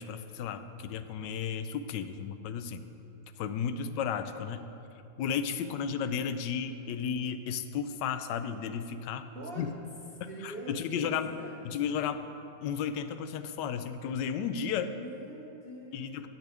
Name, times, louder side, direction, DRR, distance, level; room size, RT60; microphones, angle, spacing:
voice 1, 0.0-2.8 3.4-4.7 5.2-9.3 9.6-9.8 10.2-11.3 11.6-12.2 12.6-14.9 15.9-16.3, left 7 dB, 80° left, 10 dB, 1.2 m, -33 dB
voice 2, 9.3-9.7 10.2-11.7 14.7-16.3, right 2 dB, 70° right, -1 dB, 0.5 m, -44 dB
12.0 x 9.0 x 3.4 m, 2.8 s
omnidirectional pair, 1.9 m